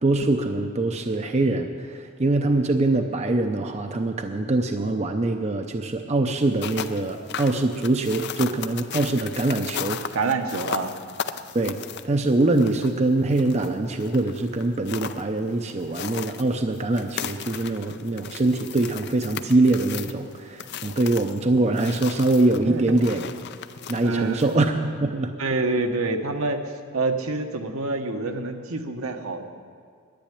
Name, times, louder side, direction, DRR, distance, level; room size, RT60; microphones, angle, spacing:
voice 1, 0.0-10.0 11.5-11.8 12.0-23.3 23.9-25.3, right 2 dB, 30° right, 5 dB, 0.6 m, -23 dB
sound 1, 6.4-24.7, left 7 dB, 50° left, 0.5 m, -37 dB
voice 2, 10.1-10.9 22.7-23.0 24.0-24.5 25.4-29.5, right 3 dB, 70° right, 5 dB, 1.1 m, -27 dB
10.5 x 9.3 x 10.0 m, 2.1 s
head